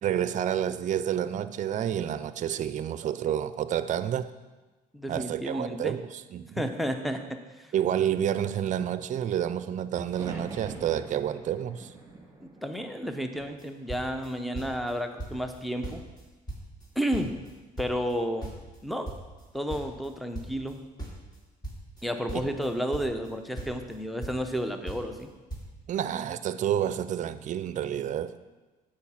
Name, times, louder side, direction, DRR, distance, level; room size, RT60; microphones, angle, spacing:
voice 1, 0.0-4.3 5.1-6.6 7.7-11.9 25.9-28.3, right 10 dB, 50° right, 14 dB, 0.5 m, -29 dB
voice 2, 4.9-6.0 6.6-7.7 12.4-16.0 17.0-17.4 17.8-18.5 18.8-19.2 19.5-20.8 22.0-25.3, equal, ahead, 7 dB, 0.7 m, -31 dB
sound 1, 10.1-14.1 14.5-15.3 17.1-17.6, right 3 dB, 20° right, 2.6 m, -45 dB
sound 2, 13.3-13.6 13.9-14.9 15.2-15.6 15.8-17.5 17.8-20.7 21.0-23.3 23.6-24.6 24.9-25.2 25.5-25.7, right 2 dB, 25° left, 2.5 m, -39 dB
8.9 x 4.9 x 7.2 m, 1.2 s
cardioid pair, 110°, 17 cm